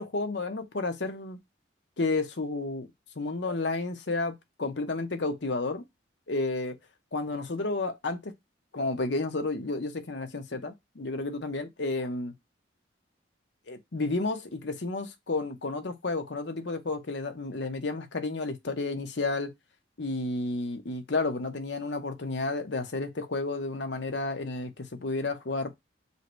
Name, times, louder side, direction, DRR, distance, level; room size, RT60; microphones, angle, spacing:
voice 1, 0.0-1.4 2.0-2.9 3.2-5.8 6.3-6.7 7.1-8.3 8.7-12.3 13.7-19.5 20.0-25.8, left 3 dB, 65° left, 0.9 m, -31 dB
5.5 x 2.2 x 4.5 m
head